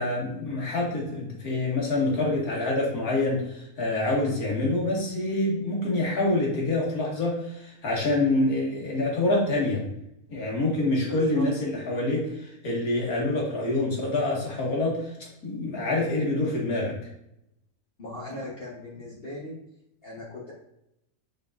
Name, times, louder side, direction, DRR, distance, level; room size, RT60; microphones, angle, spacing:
voice 1, 0.0-9.8 10.3-17.0, left 2 dB, 70° left, -3 dB, 2.4 m, -26 dB
voice 2, 11.1-11.4 18.0-19.5 20.0-20.5, left 1 dB, 40° left, -6 dB, 1.5 m, -38 dB
7.2 x 5.2 x 2.6 m, 0.80 s
omnidirectional pair, 1.6 m